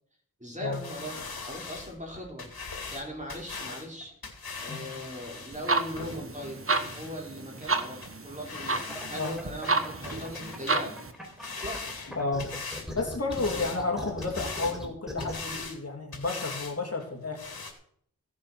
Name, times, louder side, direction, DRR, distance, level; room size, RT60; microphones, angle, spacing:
voice 1, 0.4-2.5 2.9-4.1 4.6-6.6 6.9-10.9 11.6-11.9, equal, 20° right, -1 dB, 4.9 m, -39 dB
sound 1, 0.7-7.1 7.6-7.7 8.0-8.1 8.4-9.4 9.6-10.8 11.1-12.9 13.3-13.8 14.2-14.8 15.2-15.8 16.1-16.7 17.0-17.1 17.4-17.7, left 4 dB, 80° left, 2.7 m, -40 dB
sound 2, 5.5-11.1, right 3 dB, 35° right, 1.3 m, -31 dB
sound 3, 8.8-10.6 11.0-15.6, left 1 dB, ahead, 3.8 m, -39 dB
voice 2, 12.2-12.5 12.9-17.4, left 3 dB, 40° left, 1 dB, 2.8 m, -31 dB
16.0 x 7.6 x 6.0 m, 0.65 s
wide cardioid pair, 50°, 36 cm